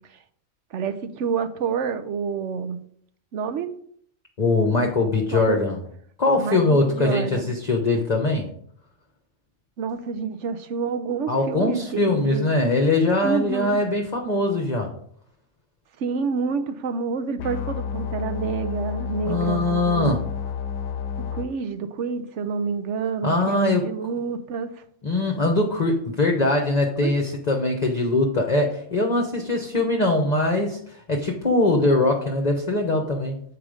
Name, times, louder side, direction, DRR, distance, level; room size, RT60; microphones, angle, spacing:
voice 1, 0.7-2.8 3.3-3.7 5.3-5.6 6.4-7.5 9.8-12.5 13.2-13.8 16.0-20.1 21.3-24.8 27.0-27.2, right 5 dB, 65° right, 10 dB, 1.0 m, -28 dB
voice 2, 4.4-5.8 6.2-8.5 11.3-14.9 19.2-20.2 23.2-23.9 25.0-33.4, left 2 dB, 35° left, 2 dB, 0.9 m, -22 dB
sound 1, 17.4-21.4, left 7 dB, 85° left, 1.0 m, -30 dB
7.8 x 4.9 x 5.0 m, 0.62 s
omnidirectional pair, 1.4 m